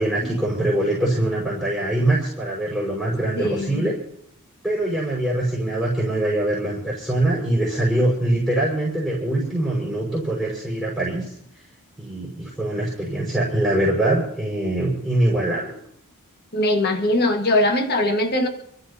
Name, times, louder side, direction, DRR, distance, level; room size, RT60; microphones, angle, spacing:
voice 1, 0.0-3.9 4.6-11.3 12.0-15.7, right 1 dB, ahead, -7 dB, 5.3 m, -23 dB
voice 2, 3.4-3.9 16.5-18.5, left 1 dB, 45° left, 3 dB, 1.6 m, -21 dB
28.5 x 13.5 x 2.8 m, 0.70 s
head